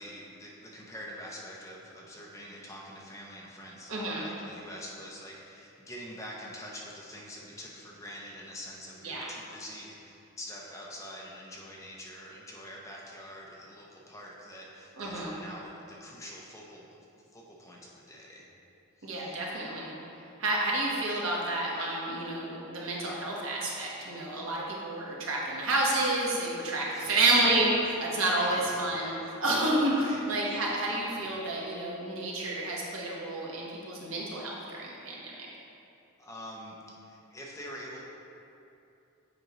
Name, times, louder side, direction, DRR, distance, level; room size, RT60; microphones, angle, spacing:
voice 1, 0.0-16.8 17.3-18.5 19.0-19.3 26.9-27.4 28.4-28.8 29.9-30.2 36.2-36.8 37.0-38.0, equal, 15° left, -3 dB, 0.7 m, -45 dB
voice 2, 3.9-4.2 9.0-9.3 15.0-15.3 19.0-19.9 20.4-35.5, right 2 dB, 70° right, -4 dB, 1.2 m, -30 dB
7.9 x 5.2 x 3.1 m, 2.8 s
head